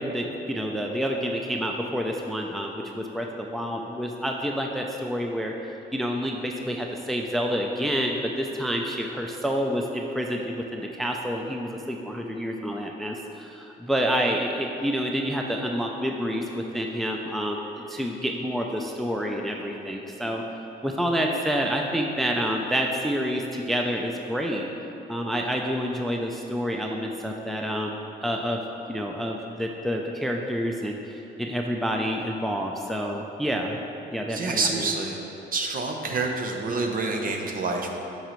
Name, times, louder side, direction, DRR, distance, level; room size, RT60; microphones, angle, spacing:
voice 1, 0.0-20.4 20.8-24.7 25.1-28.6 28.9-33.8 34.1-34.9, equal, ahead, 2 dB, 0.4 m, -28 dB
voice 2, 34.3-35.2 35.5-38.0, right 3 dB, 45° right, 2 dB, 0.8 m, -27 dB
8.9 x 5.6 x 3.0 m, 3.0 s
cardioid pair, 90°, 20 cm